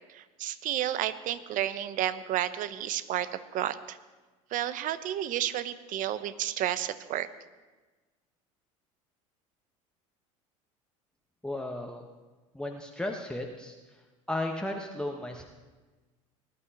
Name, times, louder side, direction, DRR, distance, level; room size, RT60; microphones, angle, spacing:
voice 1, 0.1-4.0 4.5-7.3, right 12 dB, 50° right, 13 dB, 0.8 m, -31 dB
voice 2, 11.4-12.0 12.5-13.7 14.3-15.4, left 1 dB, 5° left, 1 dB, 1.2 m, -34 dB
19.5 x 11.5 x 2.9 m, 1.3 s
hypercardioid pair, 75°, 17 cm